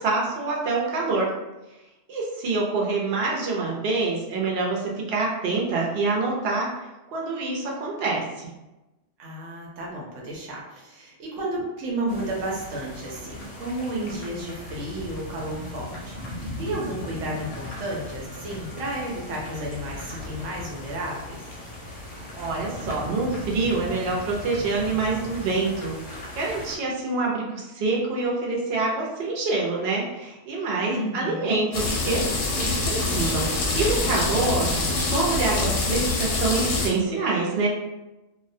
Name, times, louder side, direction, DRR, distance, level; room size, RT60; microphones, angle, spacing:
voice 1, 0.0-1.3 2.1-6.7 7.1-8.5 22.4-25.9 26.3-32.2 32.6-34.7 35.0-37.7, right 3 dB, 60° right, -3 dB, 0.8 m, -26 dB
voice 2, 9.2-21.5 30.9-31.5 34.8-35.0, right 1 dB, 90° right, -3 dB, 1.0 m, -32 dB
sound 1, 12.1-26.8, left 1 dB, 60° left, 0.7 m, -38 dB
sound 2, 31.7-36.9, left 3 dB, 80° left, 0.9 m, -25 dB
2.3 x 2.1 x 2.5 m, 1.0 s
omnidirectional pair, 1.3 m